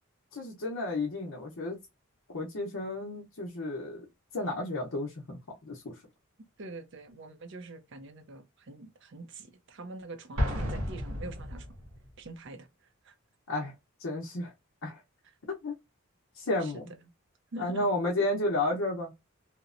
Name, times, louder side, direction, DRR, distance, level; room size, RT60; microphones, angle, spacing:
voice 1, 0.3-1.8 2.3-4.1 4.3-6.0 13.5-13.7 14.0-14.5 14.8-15.0 15.5-15.7 16.4-16.9 17.6-19.1, left 2 dB, 65° left, 0.7 m, -32 dB
voice 2, 6.6-11.7 12.2-12.7 13.0-13.1 16.6-16.8 17.5-17.9, right 2 dB, 55° right, 0.5 m, -44 dB
Explosion, 10.4-12.2, equal, 85° right, 0.8 m, -32 dB
2.9 x 2.0 x 2.4 m
head